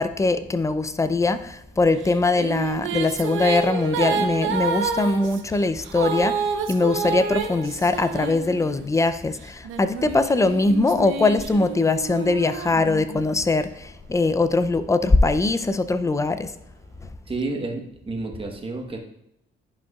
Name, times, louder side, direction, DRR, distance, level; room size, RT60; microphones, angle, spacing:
voice 1, 0.0-16.5, left 3 dB, 15° left, 11 dB, 0.4 m, -22 dB
Female singing, 2.0-9.0 9.6-13.4, right 6 dB, 90° right, 0.7 m, -29 dB
voice 2, 17.3-19.0, right 3 dB, 25° right, 3 dB, 1.2 m, -30 dB
10.5 x 5.2 x 2.4 m, 0.80 s
cardioid pair, 90°, 20 cm